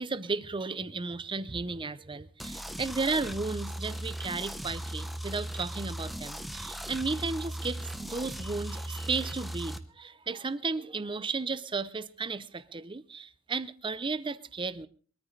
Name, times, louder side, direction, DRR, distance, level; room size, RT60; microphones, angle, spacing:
voice 1, 0.0-14.9, right 4 dB, 25° right, 0.6 m, -34 dB
sound 1, 2.4-9.8, right 1 dB, ahead, 1.0 m, -38 dB
23.0 x 14.0 x 3.3 m
head